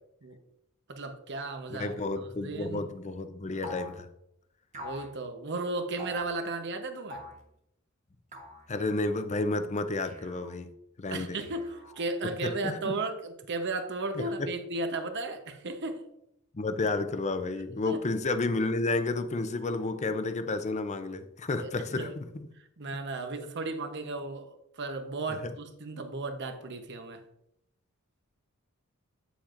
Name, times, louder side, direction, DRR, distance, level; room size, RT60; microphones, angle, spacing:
voice 1, 0.9-1.9 2.4-2.8 4.8-7.2 11.1-16.0 17.9-18.0 21.6-21.7 22.0-22.1 22.8-27.2, right 2 dB, 55° right, 7 dB, 0.9 m, -35 dB
voice 2, 1.7-4.1 8.7-10.7 11.0-11.4 12.4-13.0 14.1-14.5 16.5-22.5 25.3-25.5, left 2 dB, 35° left, 9 dB, 0.6 m, -31 dB
sound 1, 3.6-4.0 4.7-5.1 6.0-6.3 7.1-7.4 8.3-8.6 10.0-10.6 11.4-12.1, left 1 dB, 35° right, 1.2 m, -43 dB
8.8 x 7.1 x 2.5 m, 0.79 s
head